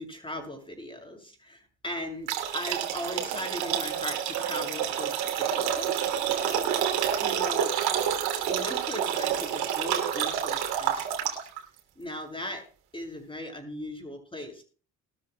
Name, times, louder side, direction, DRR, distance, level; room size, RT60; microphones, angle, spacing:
voice 1, 0.0-7.7 8.4-11.3 11.9-12.6 12.9-14.6, left 1 dB, 15° left, 3 dB, 6.9 m, -39 dB
sound 1, 2.3-11.6, right 9 dB, 70° right, 3.0 m, -28 dB
21.5 x 13.0 x 2.3 m, 0.39 s
hypercardioid pair, 55°, 39 cm